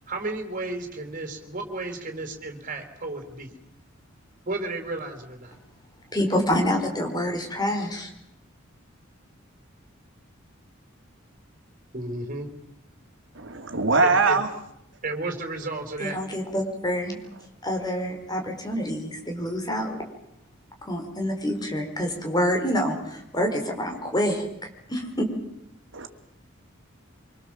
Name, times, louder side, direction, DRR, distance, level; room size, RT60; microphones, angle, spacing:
voice 1, 0.1-3.5 4.5-5.5 11.9-12.5 14.0-14.4 15.0-16.2, right 2 dB, 40° right, 5 dB, 4.1 m, -33 dB
voice 2, 6.1-8.1 16.0-17.2 17.6-20.0 20.8-25.3, equal, 20° left, 3 dB, 4.8 m, -27 dB
voice 3, 13.3-14.5 25.9-26.1, right 3 dB, 65° right, 7 dB, 2.6 m, -22 dB
25.5 x 24.5 x 7.6 m, 0.80 s
head